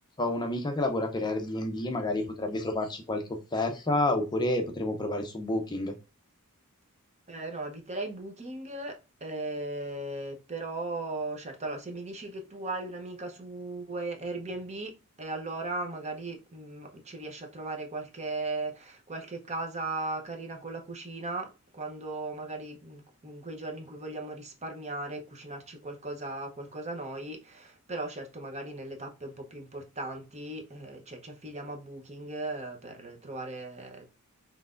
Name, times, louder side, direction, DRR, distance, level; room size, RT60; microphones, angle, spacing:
voice 1, 0.2-3.2 3.5-5.9, left 1 dB, 20° left, 0.6 m, -29 dB
voice 2, 7.3-14.9 15.2-34.1, right 2 dB, 30° right, 0.8 m, -37 dB
5.8 x 3.2 x 2.5 m
head